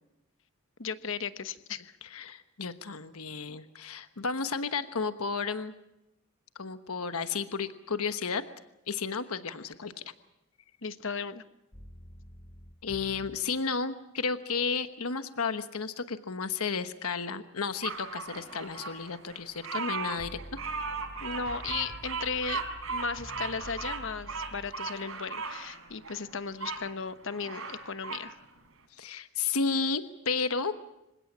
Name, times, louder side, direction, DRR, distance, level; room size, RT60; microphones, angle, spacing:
voice 1, 0.8-2.0 10.8-11.4 21.2-22.6 22.9-28.3, left 5 dB, 60° left, 11 dB, 1.1 m, -36 dB
voice 2, 2.0-5.7 6.6-8.4 8.9-10.0 12.8-20.4 28.9-30.7, left 5 dB, 80° left, 10 dB, 1.2 m, -32 dB
sound 1, 11.7-13.4 20.2-24.7, left 1 dB, 25° left, 1.1 m, -47 dB
Bird vocalization bird call bird song, 17.8-26.8 27.3-28.3, right 4 dB, 70° right, 4.4 m, -37 dB
26.5 x 16.5 x 8.7 m, 0.90 s
head